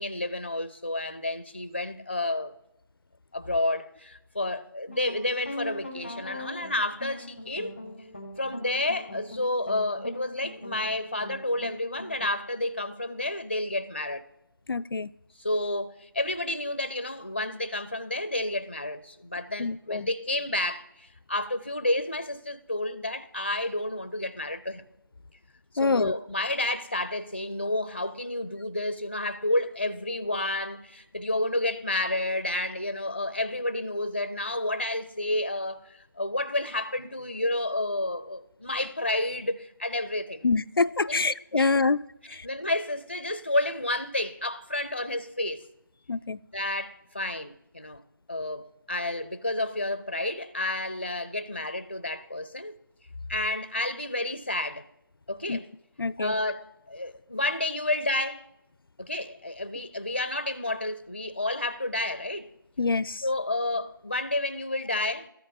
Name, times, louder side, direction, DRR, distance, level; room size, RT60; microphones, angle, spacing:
voice 1, 0.0-2.5 3.3-7.7 8.4-14.2 15.4-24.8 25.7-40.4 41.1-41.9 42.4-45.7 46.5-48.0 48.3-52.8 53.3-54.8 55.3-55.7 56.2-58.4 59.0-62.5 63.2-65.3, left 1 dB, 30° left, 0.5 m, -30 dB
sound 1, 4.9-12.3, left 1 dB, 5° left, 1.0 m, -41 dB
voice 2, 14.7-15.1 19.6-20.1 25.8-26.1 40.4-42.0 42.3-42.4 46.1-46.4 55.5-55.6 56.0-56.3 62.8-63.2, left 4 dB, 90° left, 0.4 m, -25 dB
14.0 x 5.4 x 2.7 m
figure-of-eight pair, 175°, 12 cm